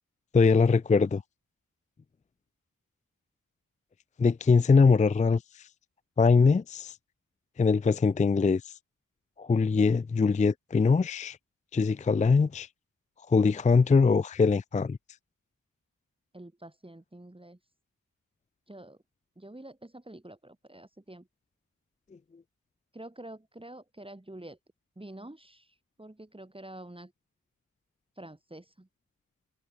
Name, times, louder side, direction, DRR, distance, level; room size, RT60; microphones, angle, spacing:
voice 1, 0.3-1.2 4.2-5.7 6.2-6.9 7.6-8.7 9.4-11.4 11.7-12.7 13.3-15.0, left 4 dB, 25° left, 0.4 m, -22 dB
voice 2, 16.3-17.6 18.7-19.0 19.4-21.3 22.9-24.6 25.0-27.1 28.2-28.9, right 1 dB, 15° right, 3.5 m, -47 dB
cardioid pair, 60°, 33 cm